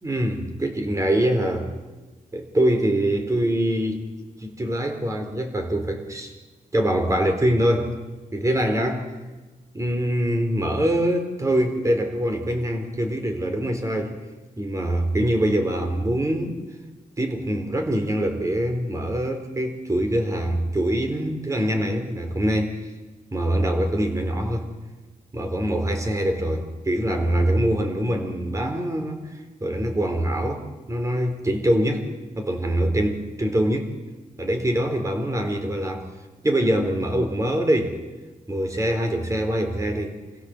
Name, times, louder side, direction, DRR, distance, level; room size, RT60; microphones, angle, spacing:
voice 1, 0.0-1.7 2.3-4.0 4.4-6.3 6.7-8.0 8.3-9.1 9.7-14.2 14.6-16.6 17.2-22.8 23.3-24.7 25.3-29.2 29.6-32.1 32.3-33.9 34.4-36.1 36.4-38.0 38.5-40.2, right 1 dB, 20° right, 5 dB, 4.2 m, -24 dB
28.0 x 16.5 x 8.0 m, 1.2 s
wide cardioid pair, 115°, 14 cm